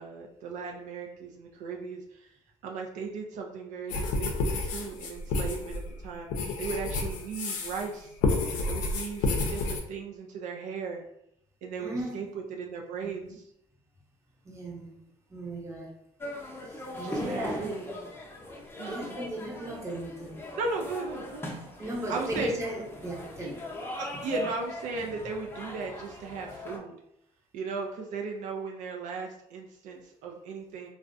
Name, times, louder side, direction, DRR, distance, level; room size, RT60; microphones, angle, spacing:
voice 1, 0.0-2.3 2.6-6.3 6.6-8.2 8.7-11.0 11.6-13.4 17.0-17.9 18.8-19.2 20.6-21.6 22.1-22.5 24.0-26.9 27.5-30.9, right 4 dB, 75° right, 1 dB, 0.4 m, -36 dB
sound 1, 3.9-7.9 8.2-9.8, left 3 dB, 80° left, 0.4 m, -30 dB
voice 2, 11.8-12.3 13.0-13.3 14.4-14.9 15.3-15.9 16.6-17.8 18.9-20.5 21.8-23.6, right 1 dB, 20° right, -1 dB, 0.7 m, -37 dB
sound 2, 16.2-26.8, left 1 dB, 15° left, 0.6 m, -39 dB
2.4 x 2.0 x 2.5 m, 0.77 s
supercardioid pair, 80°, 13 cm